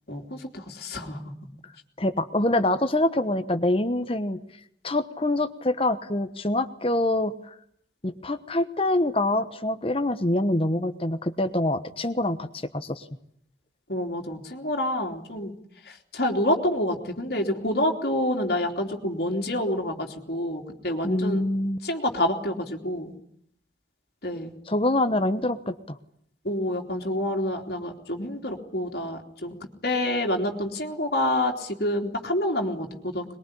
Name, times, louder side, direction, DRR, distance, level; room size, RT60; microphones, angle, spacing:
voice 1, 0.1-1.3 13.9-15.5 15.9-21.4 21.8-23.1 24.2-24.5 26.4-29.6 29.8-33.2, left 1 dB, 55° left, 1 dB, 3.2 m, -28 dB
voice 2, 2.0-4.4 4.8-7.5 8.0-13.0 21.0-21.8 24.7-26.0, left 1 dB, 30° left, 10 dB, 1.1 m, -25 dB
22.0 x 22.0 x 9.9 m, 0.70 s
head